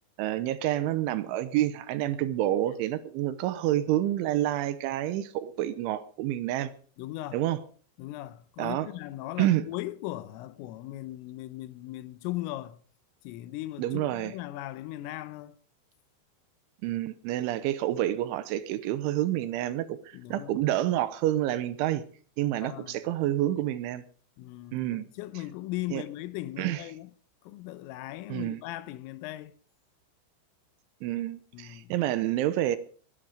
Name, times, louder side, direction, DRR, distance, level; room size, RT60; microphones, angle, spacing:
voice 1, 0.2-6.7 7.3-7.6 8.6-8.9 9.4-9.6 13.8-14.3 16.8-20.0 20.3-22.0 22.4-24.0 24.7-25.0 25.9-26.0 26.6-26.8 28.3-28.6 31.0-32.8, right 13 dB, 80° right, 3.1 m, -28 dB
voice 2, 7.0-7.4 8.0-12.8 13.3-15.6 20.1-20.7 22.6-23.0 24.4-27.1 27.4-29.6 31.5-31.9, left 16 dB, 85° left, 3.5 m, -38 dB
20.0 x 11.0 x 5.1 m
omnidirectional pair, 5.8 m